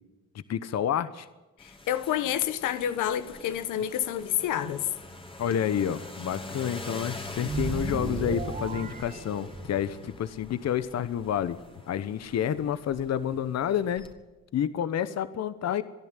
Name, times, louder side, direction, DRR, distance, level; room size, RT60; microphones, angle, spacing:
voice 1, 0.5-1.3 5.4-11.6 11.9-14.1 14.5-15.8, left 9 dB, 60° left, 1.1 m, -29 dB
voice 2, 1.6-4.9, left 10 dB, 85° left, 1.3 m, -29 dB
sound 1, 1.6-14.1, left 2 dB, 15° left, 2.9 m, -43 dB
sound 2, 7.4-10.0, right 4 dB, 25° right, 1.4 m, -34 dB
26.0 x 11.0 x 9.8 m
cardioid pair, 90°, 30 cm